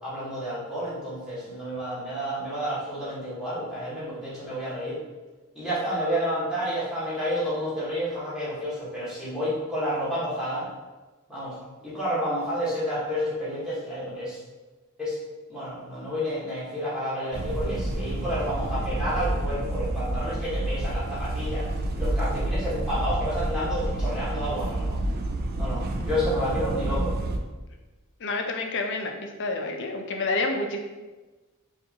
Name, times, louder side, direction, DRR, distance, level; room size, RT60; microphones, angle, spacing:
voice 1, 0.0-5.0 5.5-10.7 11.3-11.5 11.8-14.4 15.0-15.2 15.5-21.7 22.0-25.0 25.6-27.1, equal, 5° right, -10 dB, 1.3 m, -30 dB
sound 1, 17.3-27.4, right 1 dB, 45° right, 0.3 m, -29 dB
voice 2, 28.2-30.8, left 3 dB, 55° left, 4 dB, 0.5 m, -29 dB
5.0 x 2.5 x 2.9 m, 1.2 s
head